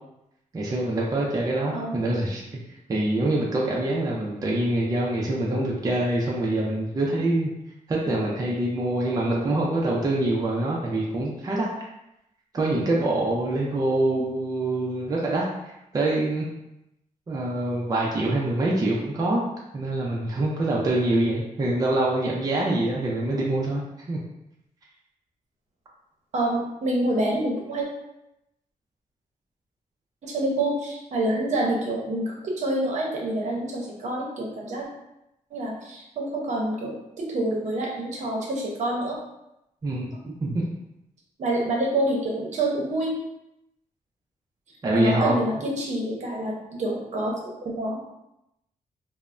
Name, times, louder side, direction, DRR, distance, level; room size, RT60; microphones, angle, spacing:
voice 1, 0.5-2.6 2.9-7.5 7.9-11.7 12.5-16.5 17.3-19.4 19.7-23.8 24.1-24.2 39.8-40.1 40.4-40.6 44.8-45.5, right 2 dB, 25° right, -3 dB, 0.4 m, -25 dB
voice 2, 26.3-27.8 30.2-34.9 35.5-39.2 41.4-43.1 44.9-48.1, right 1 dB, 60° right, -2 dB, 0.7 m, -27 dB
3.2 x 2.0 x 2.4 m, 0.86 s
wide cardioid pair, 125°, 13 cm